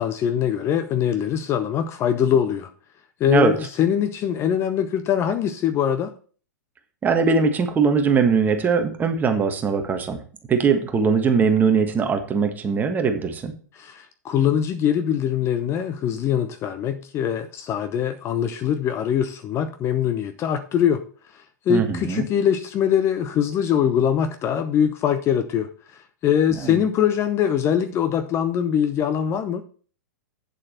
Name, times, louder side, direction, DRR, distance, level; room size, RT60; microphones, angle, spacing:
voice 1, 0.0-2.7 3.2-6.1 13.8-21.0 21.7-25.7 26.2-29.6, left 9 dB, 30° left, 0.8 m, -22 dB
voice 2, 7.0-10.2 10.5-13.5 21.7-22.2 26.6-26.8, right 5 dB, 20° right, 1.5 m, -21 dB
8.5 x 7.4 x 4.3 m
figure-of-eight pair, 105°, 10 cm